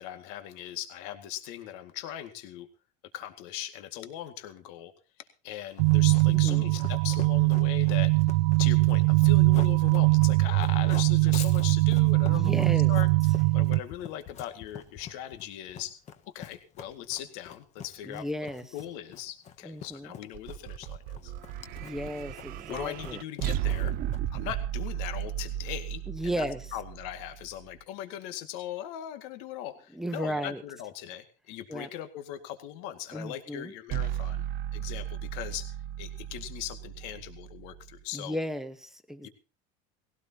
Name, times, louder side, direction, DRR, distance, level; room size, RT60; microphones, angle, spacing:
voice 1, 0.0-2.7 3.1-4.9 5.4-8.1 8.6-13.1 13.5-16.0 16.3-18.2 18.7-21.3 22.7-23.9 24.3-26.5 26.7-34.5 34.7-38.4 39.2-39.3, left 12 dB, 70° left, 8 dB, 2.1 m, -39 dB
Run, 5.8-24.4, left 8 dB, 35° left, 1.4 m, -46 dB
sound 1, 5.8-13.8, right 24 dB, 75° right, 0.7 m, -22 dB
voice 2, 6.3-6.7 12.2-12.9 18.0-18.7 19.6-20.1 21.8-23.2 26.1-26.6 29.9-30.6 31.7-31.9 33.1-33.7 38.1-39.3, equal, ahead, 8 dB, 1.2 m, -34 dB
sound 2, 20.3-27.6 33.9-38.0, right 11 dB, 45° right, 0.7 m, -35 dB
19.5 x 17.0 x 2.9 m, 0.35 s
cardioid pair, 145°, 21 cm